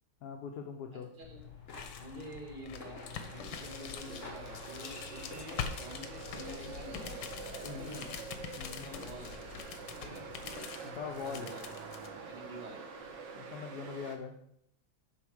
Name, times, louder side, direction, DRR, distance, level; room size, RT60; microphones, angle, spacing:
voice 1, 0.2-1.1 7.7-8.0 8.6-8.9 10.8-11.5 13.3-14.3, left 6 dB, 65° left, 4 dB, 1.2 m, -42 dB
voice 2, 0.9-1.4 2.0-7.3 7.6-8.2 8.8-9.5 10.0-10.3 11.2-11.7 12.3-12.8, equal, 25° right, -2 dB, 1.9 m, -48 dB
sound 1, 1.2-12.1, left 7 dB, 85° left, 1.5 m, -44 dB
sound 2, 1.3-6.3, left 2 dB, 45° left, 1.5 m, -51 dB
sound 3, 3.1-14.2, right 5 dB, 75° right, 1.7 m, -46 dB
9.4 x 3.5 x 6.2 m, 0.71 s
omnidirectional pair, 2.0 m